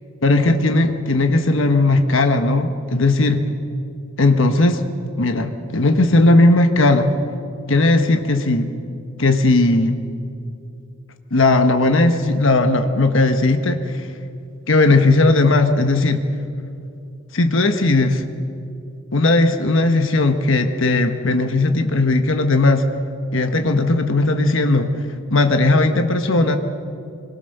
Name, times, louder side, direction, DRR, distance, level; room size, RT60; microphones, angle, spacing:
voice 1, 0.2-3.4 4.2-4.8 5.2-7.1 7.7-8.7 9.2-10.0 11.3-14.1 14.7-16.2 17.3-18.2 19.1-22.8 23.3-24.9 25.3-26.6, left 2 dB, 60° left, 6 dB, 1.2 m, -17 dB
26.0 x 22.5 x 6.7 m, 2.5 s
head